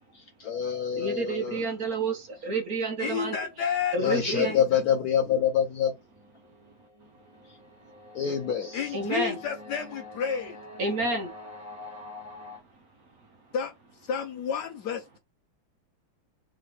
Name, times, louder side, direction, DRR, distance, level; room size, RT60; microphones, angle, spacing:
voice 1, 0.4-1.7 4.0-5.9 8.1-8.9, left 8 dB, 85° left, 0.8 m, -26 dB
voice 2, 0.9-3.4 3.9-4.6 8.9-9.4 10.8-11.3, right 3 dB, 55° right, 1.2 m, -29 dB
voice 3, 3.0-4.8 8.7-10.6 13.5-13.7 14.0-15.2, left 7 dB, 65° left, 1.1 m, -31 dB
sound 1, 5.9-12.6, left 2 dB, 15° right, 1.3 m, -46 dB
3.6 x 3.6 x 3.2 m
omnidirectional pair, 2.2 m